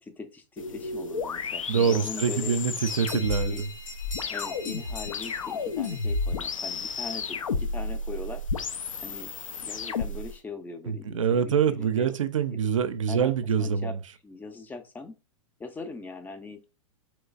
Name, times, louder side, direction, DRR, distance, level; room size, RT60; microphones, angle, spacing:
voice 1, 0.0-2.6 3.3-3.6 4.3-8.4 9.0-9.3 9.6-12.2 12.5-12.6 13.1-13.3 13.6-14.0 14.2-15.2 15.6-16.6, left 4 dB, 10° left, 0.4 m, -40 dB
sound 1, 0.6-10.3, left 4 dB, 85° left, 0.4 m, -32 dB
voice 2, 1.7-3.7 10.9-14.0, right 7 dB, 75° right, 0.4 m, -25 dB
sound 2, 2.9-7.1, left 4 dB, 65° left, 1.8 m, -42 dB
3.1 x 3.1 x 2.4 m
figure-of-eight pair, 105°, 17 cm